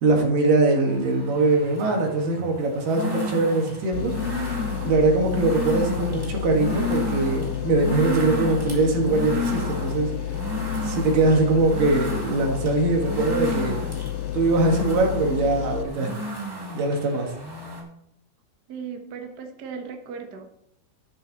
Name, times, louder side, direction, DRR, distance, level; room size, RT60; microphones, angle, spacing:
voice 1, 0.0-4.1 4.8-10.1 10.8-13.8 14.3-16.1 16.7-17.3, right 2 dB, 85° right, 1 dB, 3.4 m, -22 dB
sound 1, 0.9-17.8, equal, 10° right, 1.4 m, -33 dB
sound 2, 3.9-15.8, left 12 dB, 85° left, 2.2 m, -31 dB
voice 2, 18.7-20.5, right 6 dB, 60° right, 4 dB, 1.0 m, -36 dB
12.5 x 7.4 x 4.0 m, 0.76 s
omnidirectional pair, 3.8 m